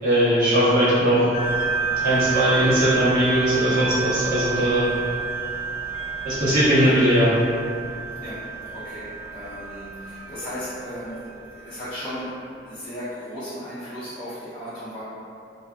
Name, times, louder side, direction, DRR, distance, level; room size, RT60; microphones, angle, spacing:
voice 1, 0.0-1.4 2.0-4.9 6.2-7.4, equal, 50° right, -12 dB, 1.0 m, -19 dB
sound 1, 1.3-12.2, right 5 dB, 85° left, 0.9 m, -30 dB
voice 2, 8.7-12.3 12.6-15.0, equal, 30° left, -15 dB, 0.7 m, -35 dB
2.6 x 2.5 x 2.4 m, 2.5 s
head